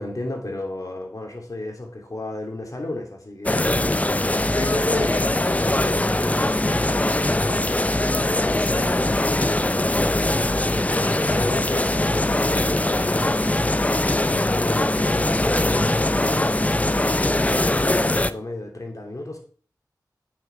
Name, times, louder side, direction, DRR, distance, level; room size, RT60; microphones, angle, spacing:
voice 1, 0.0-9.7 10.5-19.4, left 2 dB, 50° left, 1 dB, 3.0 m, -33 dB
sound 1, 3.5-18.3, left 1 dB, 20° left, 0.5 m, -21 dB
8.9 x 6.4 x 4.7 m, 0.43 s
cardioid pair, 40°, 7 cm